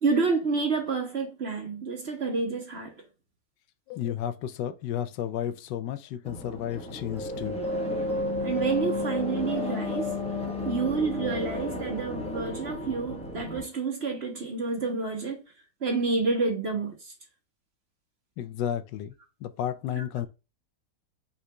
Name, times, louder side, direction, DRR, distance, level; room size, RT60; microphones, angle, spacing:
voice 1, 0.0-2.9 8.4-10.1 10.6-15.4 15.8-17.1 19.9-20.1, right 4 dB, 45° right, 1.0 m, -29 dB
voice 2, 3.9-7.6 18.4-19.1 19.4-20.3, left 10 dB, 85° left, 1.2 m, -32 dB
sound 1, 6.2-13.6, left 2 dB, 5° left, 1.0 m, -32 dB
5.6 x 3.8 x 2.2 m
omnidirectional pair, 1.9 m